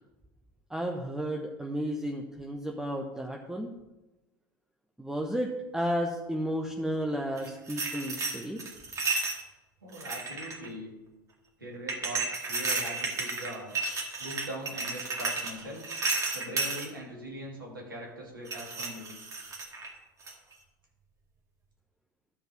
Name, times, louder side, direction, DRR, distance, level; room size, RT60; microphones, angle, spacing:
voice 1, 0.7-3.7 5.0-8.6, equal, 5° right, 2 dB, 1.1 m, -33 dB
sound 1, 7.4-9.4 9.9-10.7 11.9-16.9 18.5-19.9 20.3-20.5, right 3 dB, 30° right, 2.2 m, -33 dB
voice 2, 9.8-10.9 11.6-13.7 14.2-15.8 16.3-19.1, equal, 85° right, -2 dB, 3.0 m, -41 dB
12.5 x 5.4 x 6.1 m, 1.0 s
figure-of-eight pair, 75°, 11 cm